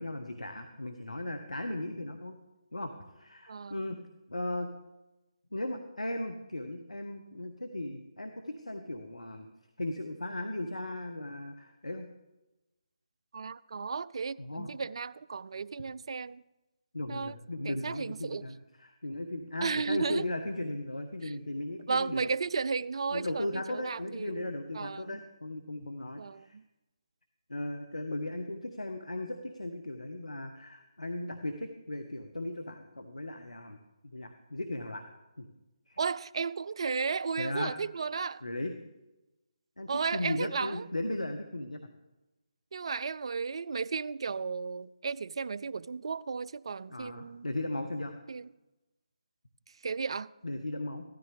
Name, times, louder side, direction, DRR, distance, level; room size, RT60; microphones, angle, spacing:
voice 1, 0.0-2.4 2.7-4.0 4.3-4.7 5.5-9.5 9.8-12.1 14.4-14.7 16.9-22.3 23.1-26.5 27.5-33.8 34.1-35.1 35.4-35.5 35.9-36.0 37.4-37.7 38.4-38.7 39.8-41.8 46.9-48.1 50.4-51.0, left 1 dB, 90° left, 1.2 m, -37 dB
voice 2, 3.5-4.0 13.3-16.4 17.1-17.3 17.6-18.4 19.6-20.2 21.2-21.3 21.9-25.2 26.2-26.6 36.0-38.4 39.9-40.9 42.7-47.5 48.3-48.5 49.8-50.3, right 5 dB, 55° right, 0.4 m, -34 dB
15.0 x 13.0 x 3.4 m
figure-of-eight pair, 155°, 3 cm